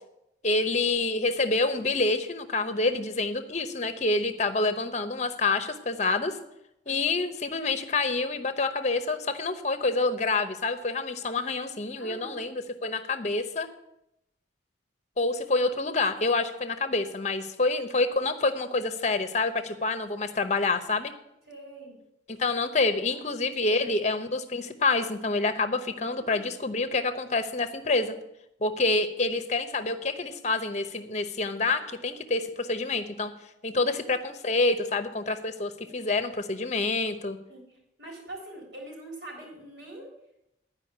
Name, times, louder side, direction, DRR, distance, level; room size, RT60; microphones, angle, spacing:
voice 1, 0.4-6.3 6.9-13.7 15.2-21.1 22.3-28.1 28.6-33.3 33.6-37.4, left 3 dB, 40° left, 10 dB, 0.8 m, -27 dB
voice 2, 6.9-7.2 12.0-12.4 21.5-22.0 23.1-23.3 23.6-23.9 26.3-26.5 33.7-33.9 37.5-37.6 38.0-40.1, right 2 dB, 65° right, 0 dB, 3.8 m, -44 dB
11.5 x 5.3 x 8.6 m, 0.83 s
head